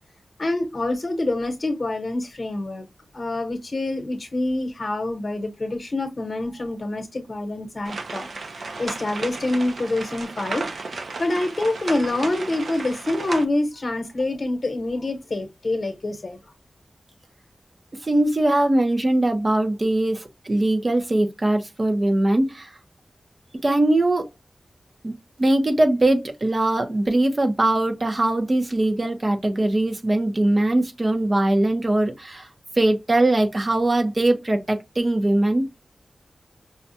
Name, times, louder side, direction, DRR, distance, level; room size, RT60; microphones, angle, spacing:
voice 1, 0.4-2.9 3.1-8.3 8.6-10.7 11.2-16.4, left 2 dB, 50° left, 1.0 m, -26 dB
sound 1, 7.8-13.4, right 3 dB, 75° right, 0.6 m, -34 dB
voice 2, 18.0-22.7 23.6-24.3 25.0-32.5 32.8-35.7, right 1 dB, 35° right, 0.8 m, -21 dB
5.6 x 2.3 x 2.7 m
wide cardioid pair, 120°, 0 cm